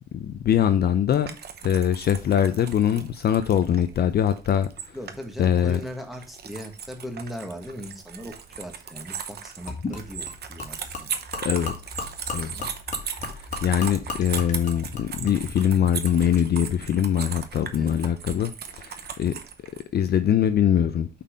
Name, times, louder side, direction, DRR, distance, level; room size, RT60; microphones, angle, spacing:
voice 1, 0.1-1.4 1.6-4.7 5.4-5.8 11.4-11.7 12.3-12.5 13.0-19.3 19.9-21.1, left 9 dB, 55° left, 0.6 m, -23 dB
sound 1, 1.1-19.8, right 7 dB, 55° right, 0.8 m, -38 dB
voice 2, 4.9-11.2 12.4-12.7 17.8-18.0, equal, ahead, 1.5 m, -38 dB
Gurgling / Liquid, 9.7-16.5, left 3 dB, 40° left, 1.8 m, -37 dB
5.5 x 4.2 x 5.0 m
cardioid pair, 90°, 20 cm